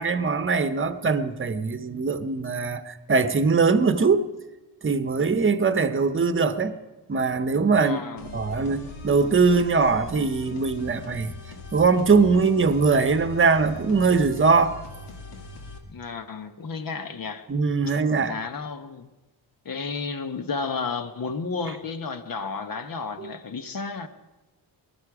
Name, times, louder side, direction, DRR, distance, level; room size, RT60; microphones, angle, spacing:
voice 1, 0.0-4.3 4.8-6.8 7.1-8.0 8.3-11.3 11.7-14.8 17.5-18.4, right 4 dB, 30° right, 0.9 m, -21 dB
voice 2, 7.8-8.4 15.9-17.5 17.9-18.0 18.3-19.1 19.6-24.1, left 4 dB, 55° left, 1.2 m, -32 dB
sound 1, 8.2-15.8, left 3 dB, 85° left, 1.8 m, -41 dB
20.0 x 12.5 x 4.9 m
cardioid pair, 75°, 41 cm